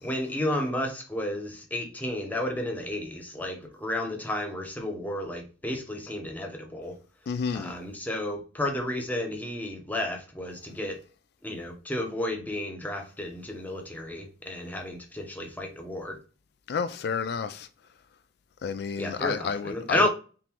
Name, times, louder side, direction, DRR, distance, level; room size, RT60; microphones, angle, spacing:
voice 1, 0.0-7.0 7.5-11.0 11.4-16.2 19.0-20.1, left 1 dB, 10° left, 0.8 m, -32 dB
voice 2, 7.3-7.8 16.7-17.7 18.6-20.1, left 5 dB, 60° left, 0.3 m, -30 dB
3.8 x 3.7 x 2.9 m
head